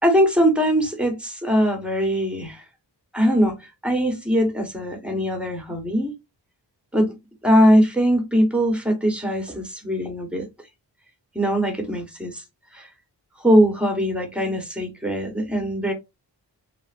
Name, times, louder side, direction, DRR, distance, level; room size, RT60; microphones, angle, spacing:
voice 1, 0.0-2.6 3.1-6.2 6.9-7.2 7.4-10.5 11.3-12.4 12.7-12.9 13.4-15.9, equal, 5° right, 1.1 m, -21 dB
3.2 x 2.4 x 2.5 m
cardioid pair, 55°, 43 cm